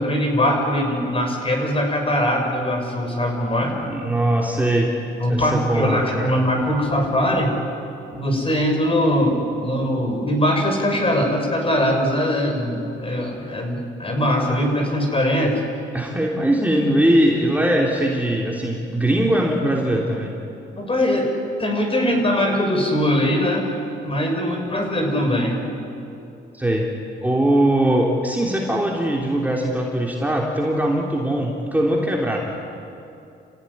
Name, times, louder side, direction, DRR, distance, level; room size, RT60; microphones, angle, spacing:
voice 1, 0.0-3.8 5.2-7.5 8.1-15.6 20.7-21.3 21.6-23.7 24.0-25.6, equal, 30° left, 3 dB, 6.3 m, -21 dB
voice 2, 3.8-4.9 5.3-6.3 15.9-20.3 26.5-26.9 27.2-32.5, right 1 dB, 10° right, -2 dB, 3.3 m, -21 dB
29.5 x 16.0 x 10.0 m, 2.7 s
cardioid pair, 90°, 20 cm